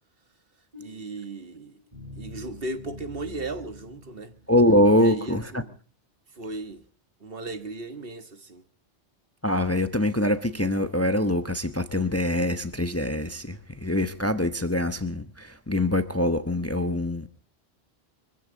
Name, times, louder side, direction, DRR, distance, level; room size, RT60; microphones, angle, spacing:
sound 1, 0.7-4.8, left 1 dB, 35° right, 7.7 m, -45 dB
voice 1, 0.8-1.8 2.2-4.3 4.9-5.7 6.3-6.9 7.2-8.6, right 2 dB, 60° right, 1.7 m, -36 dB
voice 2, 4.5-5.6 9.4-17.3, left 1 dB, 15° left, 0.9 m, -24 dB
24.5 x 15.0 x 4.0 m
omnidirectional pair, 1.1 m